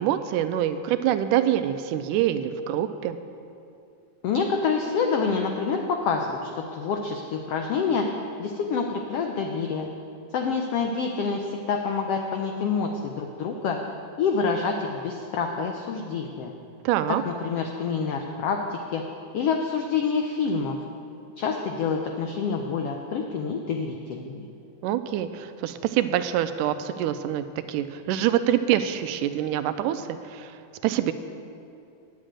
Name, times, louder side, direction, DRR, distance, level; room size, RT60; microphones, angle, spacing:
voice 1, 0.0-3.2 16.9-17.2 24.8-30.5 30.8-31.1, right 11 dB, 85° right, 11 dB, 2.1 m, -25 dB
voice 2, 4.2-8.1 8.4-9.9 10.3-13.8 14.2-16.5 17.1-19.0 19.3-20.8 21.4-24.5, left 5 dB, 90° left, 3 dB, 1.3 m, -27 dB
10.0 x 7.7 x 8.8 m, 2.5 s
omnidirectional pair, 3.6 m